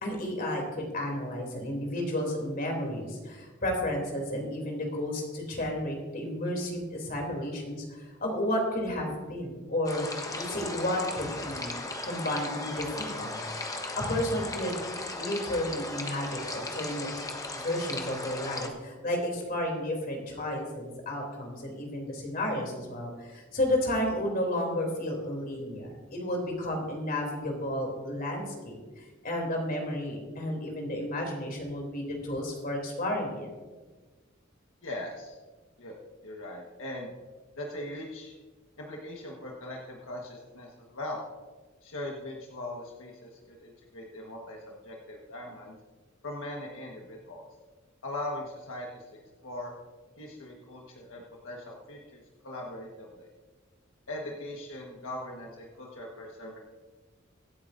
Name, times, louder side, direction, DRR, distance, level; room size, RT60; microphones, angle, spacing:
voice 1, 0.0-10.1 10.3-11.7 12.0-13.4 14.0-14.8 15.2-17.1 17.5-33.5, left 1 dB, 45° left, 1 dB, 3.1 m, -32 dB
sound 1, 9.8-18.7, left 2 dB, 15° left, 1.1 m, -37 dB
voice 2, 34.8-35.3 35.8-36.0 36.2-37.1 37.6-38.4 38.8-41.2 41.8-45.8 46.2-47.4 48.0-49.0 49.4-49.7 50.2-53.3 54.1-56.6, left 1 dB, 80° left, -1 dB, 1.5 m, -40 dB
24.0 x 8.7 x 2.6 m, 1.3 s
head